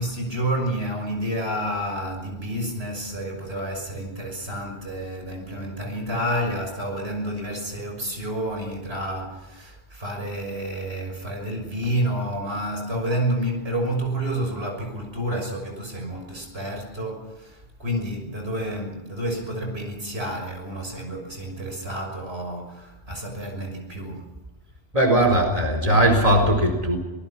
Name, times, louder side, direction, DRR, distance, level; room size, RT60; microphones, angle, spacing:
voice 1, 0.0-24.4, right 1 dB, 85° right, 6.7 m, -29 dB
voice 2, 24.9-27.0, right 1 dB, 35° right, 4.6 m, -19 dB
26.0 x 20.0 x 6.0 m
omnidirectional pair, 1.0 m